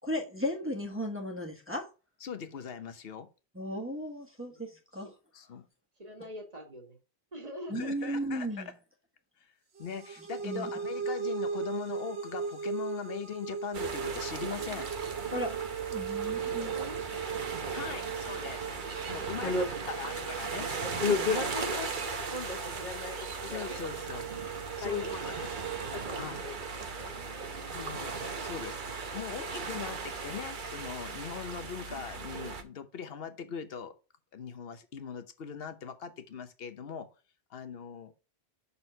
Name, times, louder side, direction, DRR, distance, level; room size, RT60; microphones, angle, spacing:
voice 1, 0.0-1.9 3.5-5.1 7.7-8.7 10.4-10.7 15.3-15.5 15.9-16.7, equal, 10° right, 1.2 m, -35 dB
voice 2, 2.2-3.3 5.3-5.7 7.7-8.6 9.4-9.5 9.8-14.9 17.7-18.7 19.1-20.9 23.4-24.3 24.8-25.8 26.2-26.4 27.7-28.1 28.4-28.8 29.1-33.9 34.3-37.1 37.5-38.1, left 7 dB, 65° left, 1.1 m, -41 dB
voice 3, 6.0-7.0 7.3-8.1 8.5-8.7 16.1-18.2 18.8-20.3 21.2-22.2 24.8-25.6 26.4-27.6, equal, 35° right, 1.7 m, -47 dB
sound 1, 9.8-26.1, right 6 dB, 70° right, 1.4 m, -38 dB
sound 2, 13.7-32.6, right 4 dB, 50° right, 0.9 m, -38 dB
voice 4, 21.0-21.9 22.3-23.8 24.8-25.0 25.9-26.5 27.7-27.9, left 4 dB, 40° left, 1.6 m, -33 dB
6.2 x 4.2 x 5.4 m
omnidirectional pair, 1.1 m